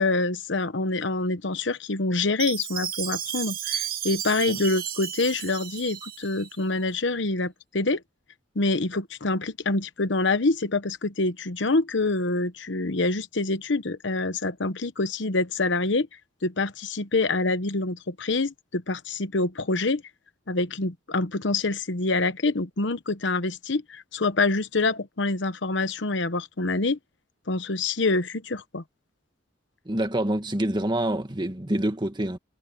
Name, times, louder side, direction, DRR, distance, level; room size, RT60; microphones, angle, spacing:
voice 1, 0.0-8.0 8.5-16.1 16.4-20.0 20.5-27.0 27.5-28.8, left 3 dB, 70° left, 1.1 m, -26 dB
Chime, 2.4-6.5, right 9 dB, 50° right, 1.8 m, -33 dB
voice 2, 29.9-32.4, right 1 dB, 25° right, 1.9 m, -26 dB
head